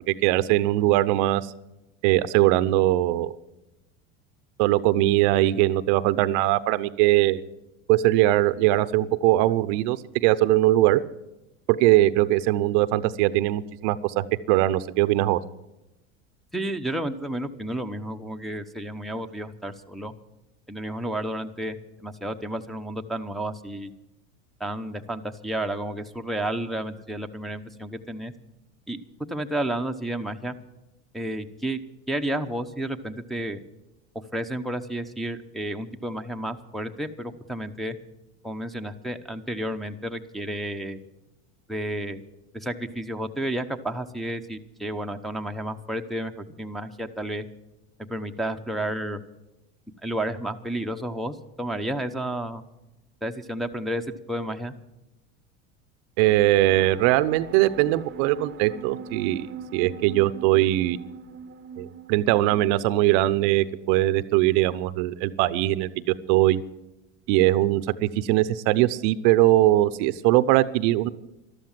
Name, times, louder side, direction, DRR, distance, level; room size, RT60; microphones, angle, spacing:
voice 1, 0.0-1.5 2.0-3.3 4.6-7.4 7.9-11.0 11.7-15.4 56.2-61.0 61.8-66.6 67.3-71.1, right 16 dB, 65° right, 15 dB, 0.8 m, -21 dB
voice 2, 16.5-20.1 20.7-23.9 24.6-28.3 28.9-29.0 29.3-30.5 31.1-31.8 32.1-33.6 34.3-38.0 38.4-41.0 41.7-42.2 42.5-47.5 48.1-49.2 50.0-52.6 53.2-54.7, right 1 dB, ahead, 3 dB, 0.9 m, -31 dB
sound 1, 56.3-63.9, right 6 dB, 30° right, 0.9 m, -41 dB
13.0 x 12.5 x 7.5 m, 0.97 s
hypercardioid pair, 95°, 38 cm